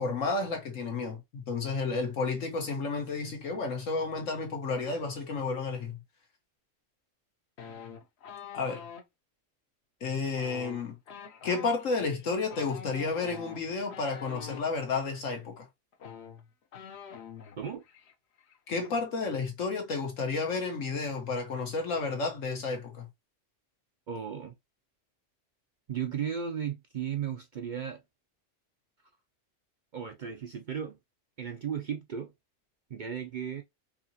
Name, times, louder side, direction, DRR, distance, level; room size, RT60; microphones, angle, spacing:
voice 1, 0.0-6.0 8.5-8.9 10.0-11.0 11.4-15.7 18.7-23.1, left 4 dB, 85° left, 1.6 m, -31 dB
sound 1, 7.6-9.0 10.3-14.7 15.6-15.7 15.9-17.6 17.9-18.1 18.4-18.9, left 7 dB, 60° left, 1.0 m, -45 dB
voice 2, 24.1-24.6 25.9-28.0 29.9-31.0 31.4-32.3 32.9-33.6, right 8 dB, 60° right, 0.5 m, -35 dB
4.8 x 2.8 x 2.8 m
omnidirectional pair, 1.3 m